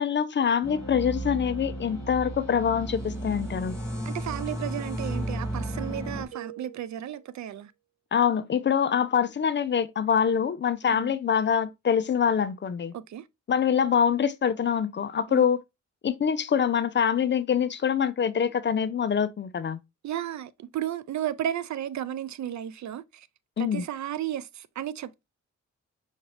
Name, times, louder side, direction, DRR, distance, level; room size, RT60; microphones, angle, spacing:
voice 1, 0.0-3.8 8.1-12.9 13.5-15.6 16.0-19.8 23.6-23.8, left 7 dB, 40° left, 0.4 m, -25 dB
sound 1, 0.6-6.2, right 1 dB, 10° right, 1.9 m, -34 dB
voice 2, 4.1-7.7 10.9-11.1 12.9-13.3 15.3-15.5 20.0-23.3 23.6-25.2, right 11 dB, 70° right, 0.4 m, -34 dB
sound 2, 6.3-7.5, right 14 dB, 50° right, 1.5 m, -45 dB
5.8 x 2.7 x 3.1 m
cardioid pair, 100°, 30 cm